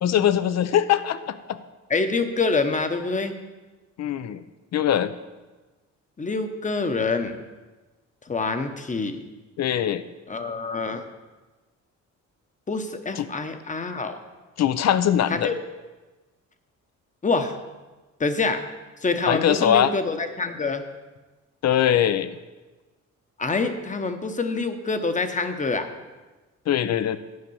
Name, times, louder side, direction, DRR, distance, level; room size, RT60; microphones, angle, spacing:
voice 1, 0.0-1.6 4.0-4.4 4.7-5.1 9.6-10.0 13.2-13.3 14.6-15.5 19.3-19.9 21.6-22.4 26.7-27.2, left 10 dB, 60° left, 13 dB, 0.6 m, -21 dB
voice 2, 1.9-3.3 6.2-7.4 8.3-9.2 10.3-11.0 12.7-14.2 15.3-15.6 17.2-17.6 18.2-18.6 19.0-20.8 23.4-25.9, left 3 dB, 25° left, 8 dB, 1.0 m, -26 dB
9.6 x 5.3 x 7.1 m, 1.2 s
cardioid pair, 90°, 30 cm